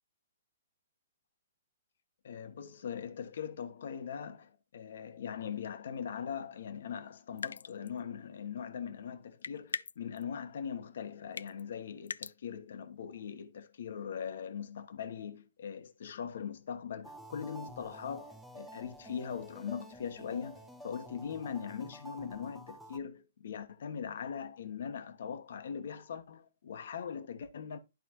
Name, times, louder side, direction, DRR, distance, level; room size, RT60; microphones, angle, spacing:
voice 1, 2.2-27.8, left 7 dB, 65° left, 1.2 m, -41 dB
sound 1, 7.4-8.0 9.4-10.2 11.4-11.6 12.1-12.3, left 5 dB, 85° left, 0.3 m, -39 dB
sound 2, 17.0-23.0, right 1 dB, ahead, 1.1 m, -50 dB
11.5 x 4.1 x 3.0 m
hypercardioid pair, 135°, 0 cm